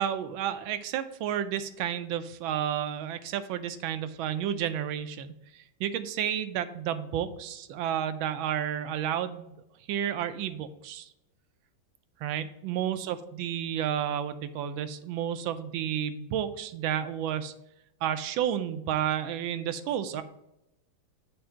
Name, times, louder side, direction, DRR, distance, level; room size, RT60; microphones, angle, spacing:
voice 1, 0.0-9.5 9.9-11.1 12.2-17.5 18.0-20.2, right 10 dB, 85° right, 11 dB, 1.4 m, -31 dB
7.5 x 2.6 x 5.6 m, 0.86 s
omnidirectional pair, 2.1 m